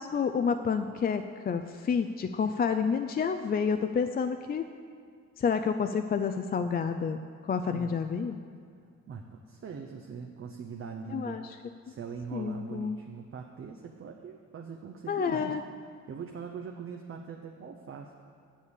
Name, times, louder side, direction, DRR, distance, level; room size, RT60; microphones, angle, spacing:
voice 1, 0.0-4.6 5.4-8.4 11.1-11.4 12.3-13.0 15.1-15.6, left 6 dB, 30° left, 8 dB, 0.4 m, -29 dB
voice 2, 7.7-8.0 9.1-15.6 16.1-18.1, right 6 dB, 45° right, 2 dB, 0.8 m, -42 dB
7.4 x 7.0 x 8.2 m, 2.2 s
cardioid pair, 90°, 30 cm